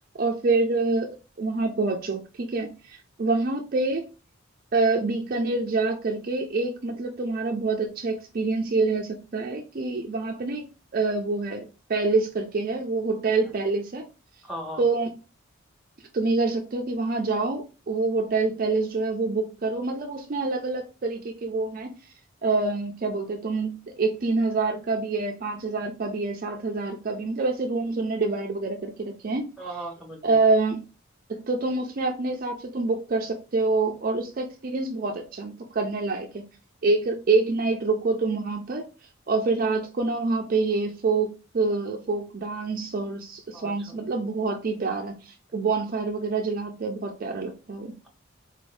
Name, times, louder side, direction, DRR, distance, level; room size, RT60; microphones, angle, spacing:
voice 1, 0.2-4.1 4.7-10.6 10.9-14.1 14.8-15.1 16.1-21.9 22.4-29.5 30.2-30.8 31.3-36.4 36.8-38.8 39.3-47.9, right 3 dB, 40° right, 0.4 m, -26 dB
voice 2, 14.4-14.8 29.6-30.4 43.5-44.0, right 1 dB, ahead, 0.9 m, -37 dB
4.0 x 2.6 x 3.2 m
head